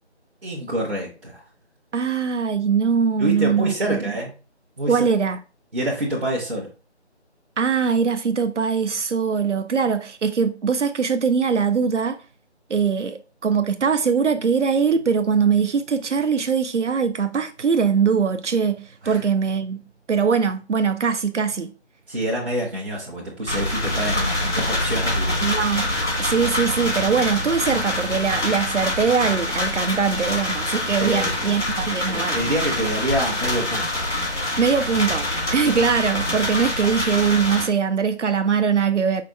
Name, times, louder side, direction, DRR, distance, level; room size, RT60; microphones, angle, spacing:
voice 1, 0.4-1.4 3.2-4.3 4.8-5.0 5.7-6.7 19.0-19.2 22.1-25.5 31.0-31.5 32.1-34.0, right 1 dB, 50° right, 1.1 m, -27 dB
voice 2, 1.9-4.0 4.9-5.4 7.6-12.2 12.7-19.8 20.1-21.7 25.4-25.9 26.2-32.4 34.6-39.2, right 6 dB, 85° right, 0.6 m, -21 dB
sound 1, 23.5-37.7, left 1 dB, 80° left, 1.6 m, -25 dB
5.1 x 2.2 x 3.8 m
figure-of-eight pair, 165°, 34 cm